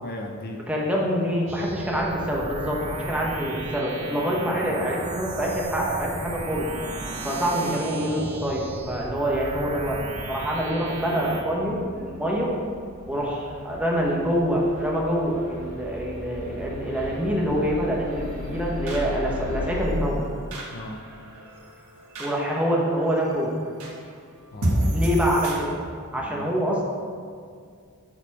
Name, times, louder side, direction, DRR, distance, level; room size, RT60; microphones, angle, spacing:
voice 1, 0.0-0.6 13.1-13.3 20.7-21.0 24.5-25.0 26.2-26.5, left 1 dB, 45° left, 2 dB, 0.6 m, -37 dB
voice 2, 0.7-6.6 7.2-10.0 10.3-12.5 13.1-20.2 22.2-23.6 24.9-25.7 26.1-26.9, equal, 5° right, -3 dB, 1.0 m, -26 dB
sound 1, 1.5-11.4, right 2 dB, 30° right, 0.7 m, -35 dB
sound 2, 4.2-19.8, left 2 dB, 60° left, 1.5 m, -40 dB
sound 3, 13.3-25.5, right 1 dB, 85° right, 1.3 m, -34 dB
8.6 x 4.1 x 4.6 m, 2.2 s
head